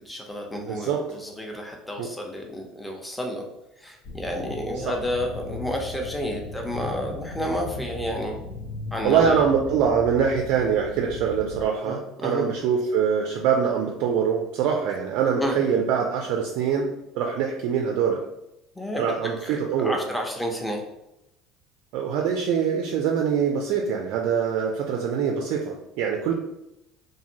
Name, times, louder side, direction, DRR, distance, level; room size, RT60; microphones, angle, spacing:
voice 1, 0.0-3.5 3.8-8.4 8.9-9.5 11.8-12.5 15.4-15.6 18.8-20.8, equal, 10° left, 1 dB, 0.6 m, -31 dB
voice 2, 0.7-1.0 2.0-2.1 4.9-5.0 9.0-16.9 17.1-18.2 19.0-20.0 21.9-26.3, right 7 dB, 60° right, 1 dB, 0.3 m, -24 dB
sound 1, 4.0-11.6, left 3 dB, 65° left, 0.7 m, -37 dB
2.6 x 2.5 x 2.8 m, 0.88 s
figure-of-eight pair, 65°, 0 cm